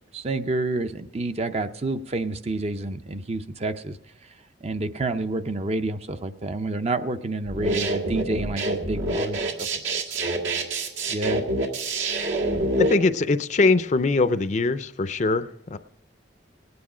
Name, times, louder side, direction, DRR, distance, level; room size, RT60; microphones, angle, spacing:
voice 1, 0.1-4.0 4.6-10.0 11.1-11.4, right 2 dB, 35° right, 10 dB, 0.5 m, -29 dB
sound 1, 7.5-12.9, right 1 dB, 80° right, 1.9 m, -26 dB
voice 2, 12.8-15.8, left 3 dB, 40° left, 12 dB, 0.5 m, -22 dB
18.0 x 9.5 x 4.9 m, 0.79 s
head